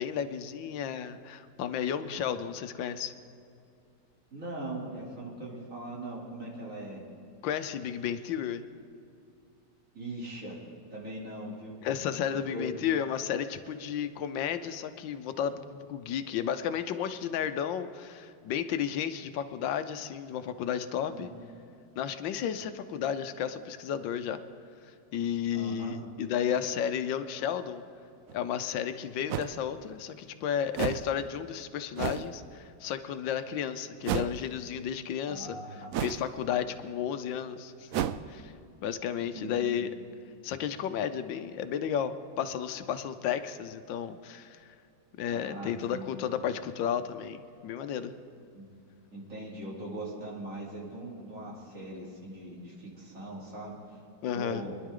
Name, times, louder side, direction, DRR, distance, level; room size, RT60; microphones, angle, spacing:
voice 1, 0.0-3.1 7.4-8.6 11.8-21.3 22.0-24.4 25.1-27.8 28.3-35.6 36.0-38.0 38.3-38.5 38.8-39.9 40.4-44.6 45.2-48.1 54.2-54.7, left 8 dB, 85° left, 10 dB, 1.4 m, -33 dB
voice 2, 4.3-7.0 9.9-10.6 10.9-11.8 12.3-12.8 21.1-21.3 25.5-26.0 35.3-35.9 36.6-36.7 39.3-39.5 45.3-46.1 48.5-48.6 49.1-53.8 54.3-54.8, right 1 dB, 45° right, -6 dB, 3.5 m, -40 dB
sound 1, 28.3-28.4 29.3-29.5 30.7-31.1 32.0-32.3 34.0-34.4 35.9-36.3 37.9-38.2, right 10 dB, 80° right, 0.7 m, -31 dB
24.5 x 11.0 x 3.8 m, 2.6 s
omnidirectional pair, 2.0 m